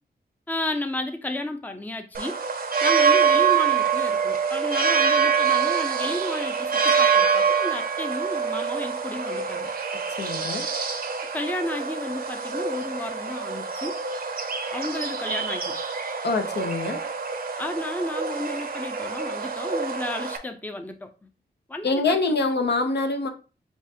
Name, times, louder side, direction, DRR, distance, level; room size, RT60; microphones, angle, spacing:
voice 1, 0.5-2.4 2.8-9.7 11.3-14.0 14.7-15.8 17.6-21.3 21.7-22.4, left 1 dB, 10° left, 0.5 m, -32 dB
sound 1, 2.1-20.4, right 6 dB, 55° right, 0.7 m, -25 dB
voice 2, 10.1-10.7 16.2-17.0 21.8-23.3, left 3 dB, 70° left, 0.8 m, -25 dB
7.0 x 2.4 x 2.7 m
wide cardioid pair, 90°, 18 cm